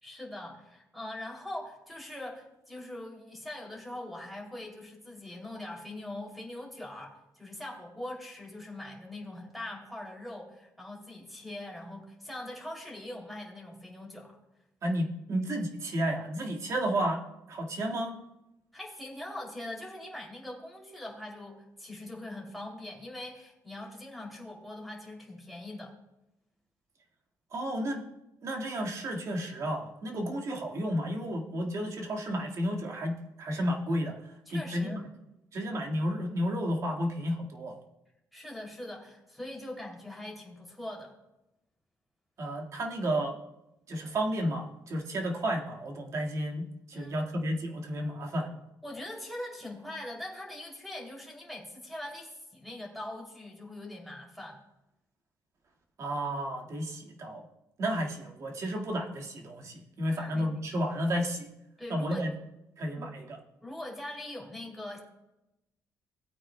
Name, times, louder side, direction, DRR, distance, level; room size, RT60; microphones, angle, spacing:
voice 1, 0.0-14.4 18.7-25.9 34.5-35.0 38.3-41.1 46.9-47.3 48.8-54.6 60.1-60.6 61.8-62.3 62.9-63.1 63.6-65.0, left 1 dB, ahead, -1 dB, 2.7 m, -42 dB
voice 2, 14.8-17.2 17.5-18.2 27.5-28.0 28.4-34.1 34.5-35.0 35.5-37.8 42.4-43.4 43.9-48.6 56.0-57.4 57.8-61.5 61.9-62.3 62.8-63.4, equal, 50° right, 0 dB, 1.8 m, -32 dB
18.0 x 8.7 x 2.2 m, 0.92 s
cardioid pair, 120°, 7 cm